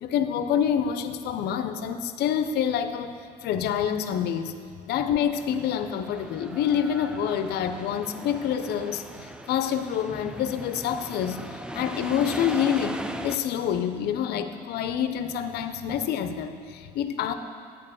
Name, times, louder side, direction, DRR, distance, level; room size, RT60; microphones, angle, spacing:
voice 1, 0.0-3.1 3.4-4.5 4.9-11.4 11.7-17.3, left 8 dB, 75° left, 9 dB, 0.6 m, -27 dB
sound 1, 5.3-13.4, right 1 dB, 5° right, 0.4 m, -39 dB
9.0 x 4.5 x 7.4 m, 2.3 s
cardioid pair, 110°, 17 cm